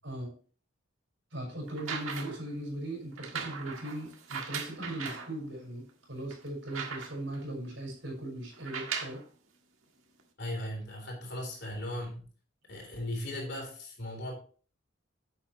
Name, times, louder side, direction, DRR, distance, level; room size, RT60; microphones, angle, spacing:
voice 1, 1.3-9.2, right 1 dB, 65° right, 0 dB, 5.4 m, -39 dB
sound 1, 1.7-2.5 3.2-5.3 5.9-6.0 6.3-7.4 8.5-9.2 10.2-10.3, right 6 dB, 90° right, 1.6 m, -39 dB
voice 2, 10.4-12.2 12.7-14.3, left 1 dB, 55° left, 1 dB, 3.7 m, -37 dB
10.5 x 7.8 x 3.0 m, 0.40 s
head